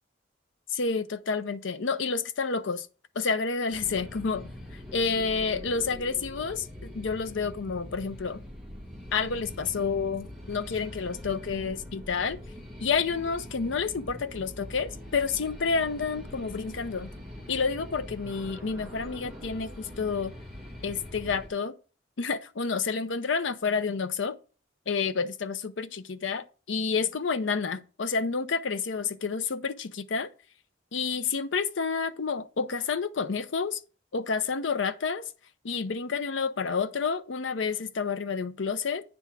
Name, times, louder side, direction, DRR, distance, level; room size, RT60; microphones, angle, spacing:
voice 1, 0.7-2.9 3.2-8.4 9.1-12.4 12.8-17.1 17.5-20.3 20.8-21.7 22.2-24.4 24.9-30.3 30.9-33.8 34.1-35.3 35.6-39.0, left 5 dB, 90° left, 0.6 m, -29 dB
sound 1, 3.7-21.5, left 1 dB, ahead, 1.7 m, -43 dB
9.3 x 3.5 x 5.9 m
head